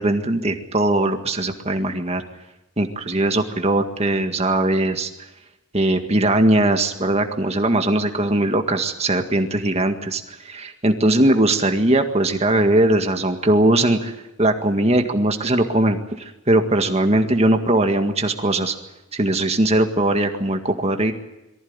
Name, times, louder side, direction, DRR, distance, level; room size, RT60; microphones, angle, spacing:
voice 1, 0.0-2.2 2.8-5.1 5.7-18.8 19.1-21.1, right 1 dB, 30° right, 5 dB, 1.9 m, -20 dB
23.0 x 15.5 x 9.7 m, 0.92 s
head